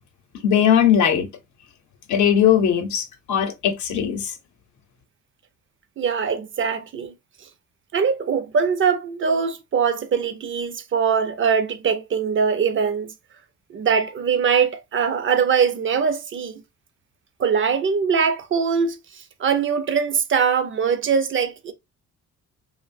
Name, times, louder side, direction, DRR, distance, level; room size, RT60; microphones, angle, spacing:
voice 1, 0.4-1.3 2.1-4.3, left 9 dB, 70° left, 0.7 m, -19 dB
voice 2, 6.0-7.1 7.9-13.1 13.7-16.6 17.4-21.7, right 6 dB, 40° right, 0.5 m, -22 dB
2.7 x 2.1 x 2.4 m
cardioid pair, 90°, 30 cm